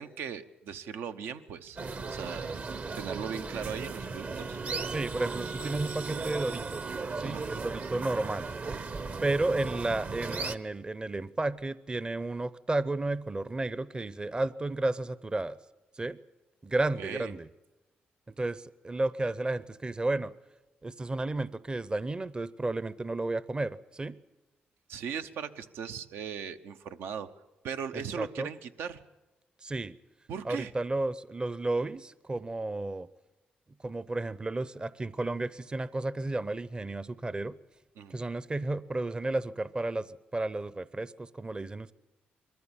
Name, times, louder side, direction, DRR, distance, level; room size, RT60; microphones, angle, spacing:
voice 1, 0.0-2.5 2.9-4.6 7.2-7.4 8.0-8.1 17.0-17.3 24.9-27.3 27.6-29.0 30.3-30.7 38.0-38.2, right 7 dB, 85° right, 9 dB, 0.8 m, -38 dB
sound 1, 1.8-10.5, right 4 dB, 45° right, 0.9 m, -36 dB
voice 2, 4.9-6.9 7.2-8.5 9.2-15.6 16.0-16.2 16.6-17.5 18.3-20.3 20.8-24.1 27.9-28.5 29.6-29.9 30.4-33.1 33.8-37.5 38.1-41.9, right 2 dB, 25° right, 17 dB, 0.6 m, -32 dB
22.0 x 14.0 x 8.8 m, 1.1 s
cardioid pair, 65°, 4 cm